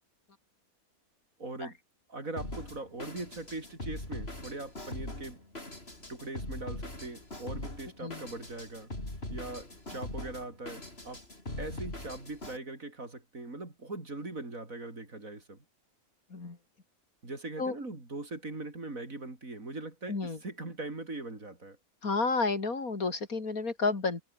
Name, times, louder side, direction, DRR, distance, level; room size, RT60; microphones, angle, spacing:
voice 1, 1.4-1.8 2.1-5.4 6.1-8.9 9.3-11.2 11.6-15.6 17.2-21.8, right 2 dB, 65° right, 5.2 m, -41 dB
Drum kit, 2.4-12.6, left 1 dB, 45° left, 6.0 m, -41 dB
voice 2, 22.0-24.2, left 3 dB, 75° left, 3.7 m, -31 dB
omnidirectional pair, 1.5 m